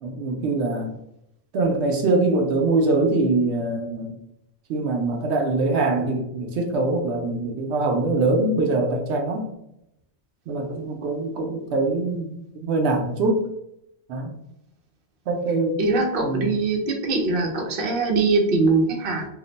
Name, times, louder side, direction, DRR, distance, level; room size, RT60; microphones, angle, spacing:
voice 1, 0.0-0.9 1.5-4.2 4.7-9.5 10.5-13.5 14.1-14.4 15.3-15.8 16.2-16.5, right 2 dB, 90° right, 2 dB, 0.9 m, -23 dB
voice 2, 15.8-19.3, right 3 dB, 60° right, 1 dB, 0.9 m, -22 dB
2.5 x 2.1 x 3.8 m, 0.80 s
omnidirectional pair, 1.1 m